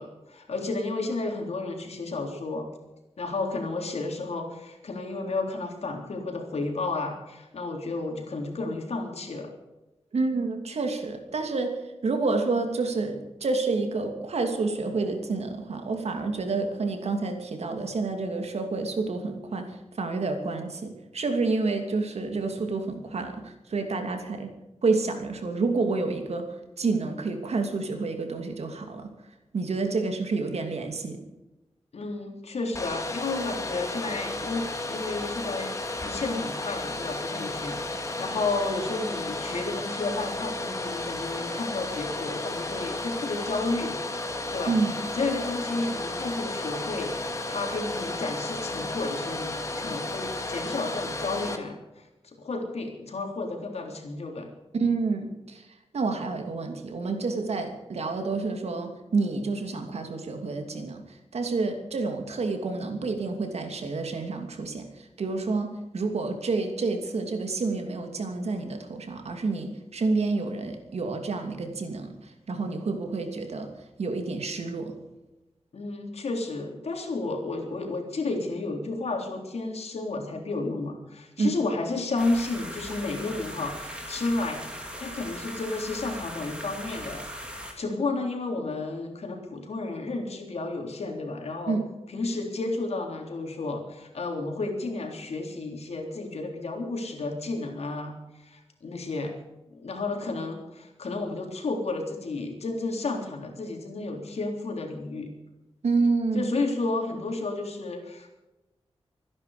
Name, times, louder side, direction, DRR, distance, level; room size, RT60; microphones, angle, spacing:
voice 1, 0.0-2.7 3.2-9.5 31.9-43.9 44.5-44.8 45.2-54.5 75.7-84.6 85.0-87.3 87.8-91.8 92.1-99.3 99.7-105.3 106.3-108.3, left 3 dB, 75° left, 2 dB, 3.7 m, -32 dB
voice 2, 10.1-24.5 24.8-29.1 29.5-31.2 44.7-45.0 54.7-55.7 55.9-73.7 74.0-74.9 81.4-81.6 91.7-91.9 105.8-106.5, right 3 dB, 80° right, 5 dB, 2.8 m, -29 dB
Domestic sounds home sounds, 32.7-51.6, left 2 dB, 30° left, 2.1 m, -33 dB
sound 1, 82.2-87.7, equal, 10° right, 3.4 m, -39 dB
25.0 x 10.5 x 5.1 m, 1.0 s
wide cardioid pair, 130°, 11 cm